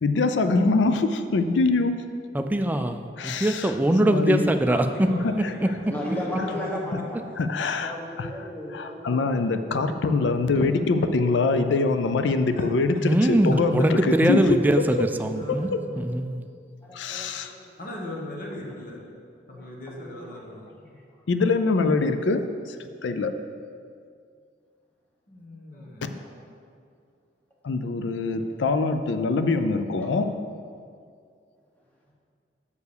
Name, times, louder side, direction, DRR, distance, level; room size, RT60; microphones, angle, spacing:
voice 1, 0.0-2.0 3.2-3.7 4.1-4.4 5.1-5.5 7.4-8.3 8.7-14.6 15.0-15.1 15.5-15.8 16.9-17.5 21.3-22.4 22.7-22.8 23.0-23.3 26.0-26.2 27.6-30.3, left 3 dB, 85° left, 9 dB, 0.5 m, -24 dB
voice 2, 2.3-4.9 5.6-5.7 13.0-15.7 16.0-16.4, right 1 dB, 10° right, 7 dB, 0.3 m, -22 dB
voice 3, 4.7-6.8 12.5-12.7 14.3-14.4 15.2-15.8 17.8-19.0 19.5-21.0 25.3-26.0, left 1 dB, 50° left, -1 dB, 1.3 m, -39 dB
voice 4, 5.8-7.2 7.6-9.5 11.7-11.8 15.9-16.0 16.8-17.9 18.6-18.7 19.5-20.6 20.9-21.2 25.7-25.9 26.2-26.5 30.0-30.1 32.1-32.2, equal, 10° left, -4 dB, 1.3 m, -36 dB
7.0 x 4.7 x 6.6 m, 2.3 s
head